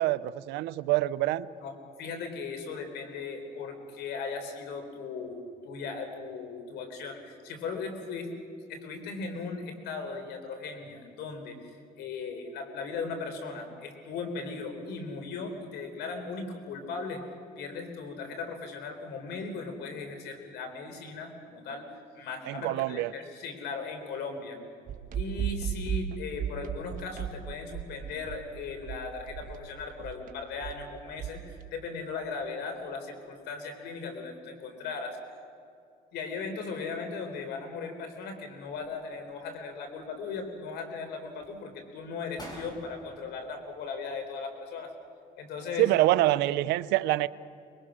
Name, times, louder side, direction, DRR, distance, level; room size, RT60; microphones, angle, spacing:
voice 1, 0.0-1.5 22.4-23.1 45.8-47.3, right 16 dB, 90° right, 0.6 m, -25 dB
voice 2, 2.0-8.3 8.7-17.2 17.6-24.6 25.1-35.2 36.1-44.9 45.4-45.9, left 4 dB, 80° left, 3.9 m, -38 dB
sound 1, 24.9-31.7, right 9 dB, 55° right, 1.6 m, -36 dB
sound 2, 38.6-39.4 39.8-40.7 41.2-41.6 42.0-42.1 42.4-44.3 44.6-44.7, equal, 25° left, 5.9 m, -49 dB
24.5 x 22.0 x 6.3 m
cardioid pair, 110°, 17 cm